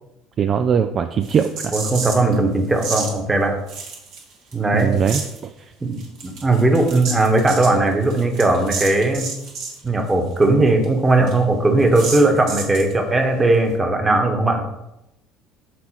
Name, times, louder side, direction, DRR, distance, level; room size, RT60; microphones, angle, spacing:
voice 1, 0.4-1.7 4.7-5.5, right 7 dB, 40° right, 8 dB, 0.3 m, -20 dB
sound 1, 1.2-2.3 2.8-3.1 3.7-4.5 4.8-5.4 6.0-9.8 10.1-10.2 10.4-10.5 10.8-10.9 11.3-11.4 11.9-12.9, right 4 dB, 55° right, 1.5 m, -30 dB
voice 2, 1.7-3.6 4.5-5.0 5.8-9.3 9.8-14.6, right 2 dB, 15° right, 3 dB, 1.3 m, -18 dB
6.0 x 4.2 x 4.3 m, 0.88 s
figure-of-eight pair, 60°, 0 cm